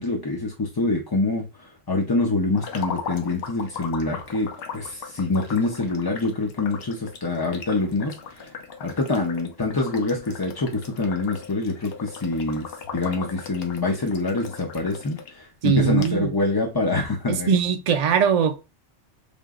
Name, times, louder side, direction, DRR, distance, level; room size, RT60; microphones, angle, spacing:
voice 1, 0.0-8.5 8.8-17.6, left 3 dB, 25° left, 0.5 m, -26 dB
sound 1, 2.5-15.3 15.7-15.8 16.0-16.1, left 6 dB, 65° left, 0.9 m, -38 dB
voice 2, 15.6-16.3 17.3-18.6, right 7 dB, 50° right, 0.5 m, -20 dB
5.1 x 2.7 x 2.4 m
omnidirectional pair, 1.2 m